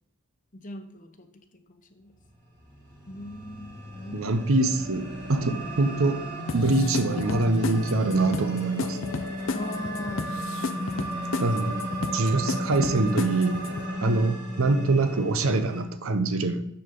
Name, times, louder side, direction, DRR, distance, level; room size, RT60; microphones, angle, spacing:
voice 1, 0.5-2.1 3.1-4.4 9.5-10.3 12.4-12.5 14.0-14.4, left 1 dB, 35° left, 6 dB, 0.9 m, -40 dB
sound 1, 2.7-15.8, equal, 20° right, 2.4 m, -34 dB
voice 2, 4.1-6.3 6.5-9.0 11.4-11.8 12.1-13.6 14.0-16.6, right 2 dB, 75° right, 10 dB, 0.8 m, -24 dB
sound 2, 6.5-13.9, left 3 dB, 60° left, 0.6 m, -33 dB
6.9 x 6.9 x 3.7 m, 0.80 s
head